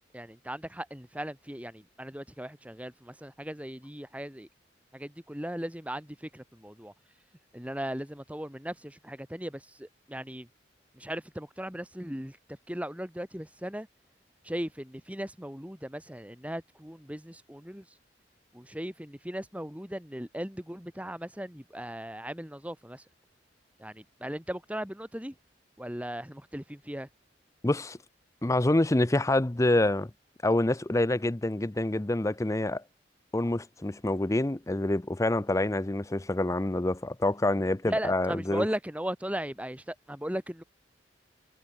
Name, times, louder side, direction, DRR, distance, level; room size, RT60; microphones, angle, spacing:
voice 1, 0.0-4.5 4.9-6.9 7.5-10.5 10.9-12.4 12.7-13.9 14.4-17.8 18.5-23.0 23.8-25.3 25.8-27.1 37.8-40.6, equal, 10° right, 3.4 m, -37 dB
voice 2, 27.6-28.0 28.4-30.1 30.4-32.8 33.3-38.6, left 1 dB, 15° left, 0.6 m, -27 dB
head